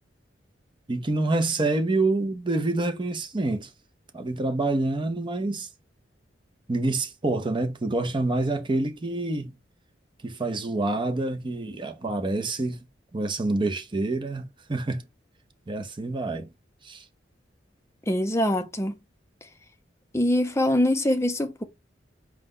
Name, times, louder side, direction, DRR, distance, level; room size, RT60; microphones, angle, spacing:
voice 1, 0.9-3.7 4.1-5.7 6.7-9.5 10.2-12.9 13.1-15.1 15.7-16.5 16.8-17.0, right 2 dB, 25° right, 0.6 m, -27 dB
voice 2, 18.1-19.0 20.1-21.6, left 1 dB, 15° left, 0.6 m, -23 dB
4.6 x 2.1 x 3.7 m
head